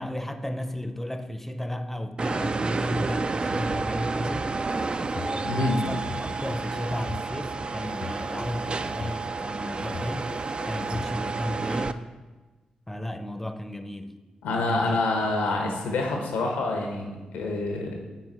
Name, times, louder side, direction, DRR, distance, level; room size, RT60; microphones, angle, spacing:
voice 1, 0.0-4.6 5.1-10.3 10.6-12.0 12.9-14.2 14.6-15.3, left 1 dB, 10° left, 0.6 m, -33 dB
sound 1, 2.2-11.9, right 3 dB, 40° right, 0.3 m, -30 dB
sound 2, 4.7-5.4 5.9-7.3 7.8-9.1 9.8-11.1, left 6 dB, 55° left, 0.3 m, -40 dB
voice 2, 5.4-5.9 14.4-18.0, left 2 dB, 90° left, 1.1 m, -27 dB
8.3 x 4.4 x 4.3 m
supercardioid pair, 45°, 3 cm